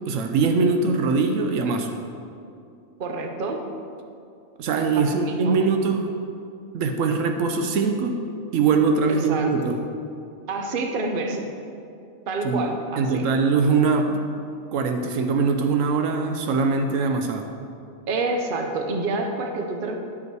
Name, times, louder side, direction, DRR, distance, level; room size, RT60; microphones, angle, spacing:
voice 1, 0.1-2.0 4.6-6.2 6.7-8.2 8.5-9.8 12.4-12.6 13.0-14.2 14.7-17.5, right 4 dB, 80° right, 5 dB, 1.0 m, -22 dB
voice 2, 3.0-3.6 5.0-5.6 9.1-9.7 10.5-11.4 12.3-13.3 18.1-20.0, right 3 dB, 50° right, 3 dB, 0.9 m, -28 dB
10.5 x 5.3 x 4.6 m, 2.5 s
omnidirectional pair, 1.4 m